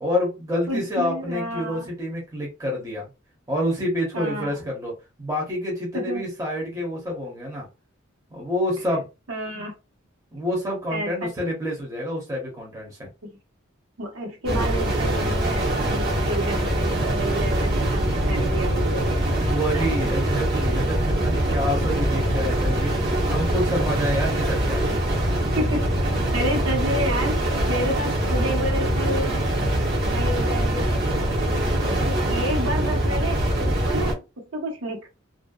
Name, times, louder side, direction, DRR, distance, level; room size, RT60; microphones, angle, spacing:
voice 1, 0.0-3.1 3.5-4.9 5.2-7.7 8.3-9.1 10.3-13.1 19.4-24.9 31.8-32.2, equal, 15° right, -3 dB, 0.8 m, -28 dB
voice 2, 0.7-1.9 4.1-4.6 5.9-6.2 9.3-9.7 10.9-11.3 13.2-13.4 14.0-19.2 19.7-19.9 25.5-29.5 30.1-30.9 31.8-35.1, right 1 dB, 80° right, 0 dB, 1.1 m, -30 dB
sound 1, 14.5-34.1, right 1 dB, 55° right, 0.9 m, -23 dB
2.5 x 2.1 x 2.3 m, 0.27 s
head